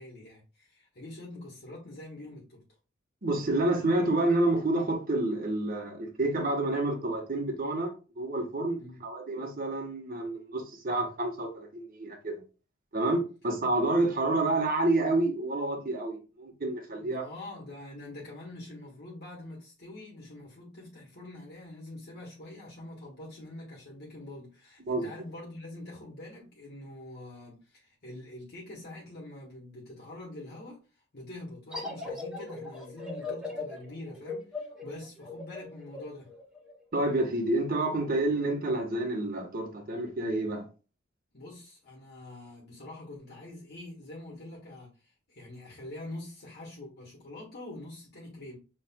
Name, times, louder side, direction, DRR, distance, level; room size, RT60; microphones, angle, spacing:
voice 1, 0.0-2.6 8.8-9.0 16.9-36.3 41.3-48.6, left 1 dB, 55° left, 1.5 m, -45 dB
voice 2, 3.2-12.4 12.9-17.3 24.8-25.1 36.9-40.6, right 2 dB, 45° right, 1.3 m, -29 dB
sound 1, 31.7-37.0, left 3 dB, 5° right, 1.3 m, -39 dB
6.2 x 3.2 x 2.3 m
head